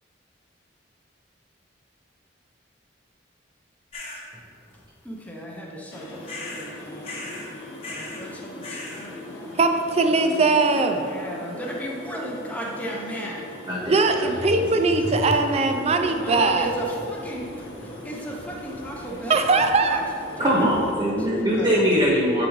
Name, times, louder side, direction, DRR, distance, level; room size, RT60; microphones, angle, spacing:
sound 1, 3.9-4.2 6.3-6.7 7.0-7.5 7.8-8.3 8.6-9.1, left 2 dB, 30° left, 0.9 m, -36 dB
voice 1, 5.0-7.3 7.9-9.6 10.2-10.3 10.8-13.4 16.2-20.0 20.3-20.6 21.5-21.8, right 1 dB, 10° left, -2 dB, 0.7 m, -35 dB
sound 2, 5.9-20.9, left 1 dB, 65° left, 0.9 m, -41 dB
voice 2, 9.6-11.1 13.9-16.7 19.3-20.1, right 3 dB, 35° right, 6 dB, 0.4 m, -20 dB
voice 3, 13.6-14.6 20.4-22.5, equal, 20° right, -5 dB, 1.0 m, -22 dB
8.0 x 5.0 x 3.1 m, 2.7 s
head